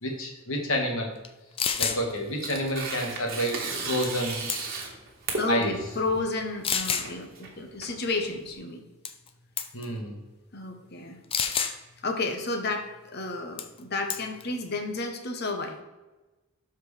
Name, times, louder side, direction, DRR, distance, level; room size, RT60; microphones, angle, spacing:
voice 1, 0.0-1.1 1.8-3.6 3.9-4.4 5.5-5.7 9.7-10.1, equal, 70° left, 1 dB, 1.6 m, -29 dB
sound 1, 1.2-1.3 1.6-2.0 4.0-4.2 4.5-4.9 5.6-5.7 6.6-7.1 9.0-9.3 9.6-9.8 11.3-11.8 13.6-13.8 14.1-14.4, left 7 dB, 25° left, 0.4 m, -28 dB
Tearing, 1.7-8.5, right 3 dB, 45° right, 1.4 m, -36 dB
voice 2, 5.4-8.8 10.5-11.2 12.0-15.8, left 2 dB, 45° left, 4 dB, 1.0 m, -31 dB
12.5 x 4.5 x 3.3 m, 1.1 s
head